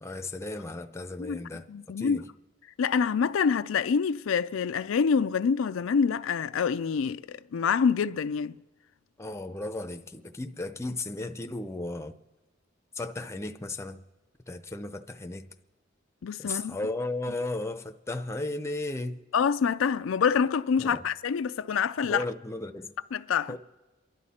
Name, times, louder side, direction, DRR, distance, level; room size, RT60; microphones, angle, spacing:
voice 1, 0.0-1.6 2.0-2.3 9.2-12.1 12.9-14.0 14.5-15.5 16.4-19.2 20.8-21.0 22.0-22.9 23.5-23.6, left 2 dB, 15° left, 0.6 m, -35 dB
voice 2, 1.7-2.2 2.8-8.6 16.2-16.8 19.3-22.2 23.1-23.6, left 6 dB, 90° left, 0.4 m, -26 dB
28.5 x 11.0 x 4.2 m
head